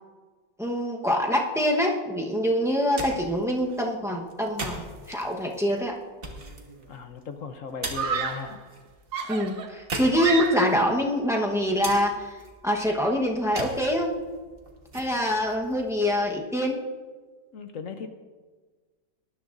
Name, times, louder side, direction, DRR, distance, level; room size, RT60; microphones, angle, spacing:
voice 1, 0.6-6.0 9.3-12.4 12.6-14.1 14.9-16.8, equal, 5° right, 0 dB, 0.6 m, -25 dB
sound 1, 2.7-16.6, right 2 dB, 35° right, 1.5 m, -41 dB
Screaming, 6.4-6.8 7.9-8.6 9.1-10.9, right 7 dB, 85° right, 1.7 m, -31 dB
voice 2, 6.9-8.6 17.5-18.1, left 5 dB, 60° left, 7 dB, 0.9 m, -37 dB
19.5 x 11.0 x 2.6 m, 1.4 s
omnidirectional pair, 2.0 m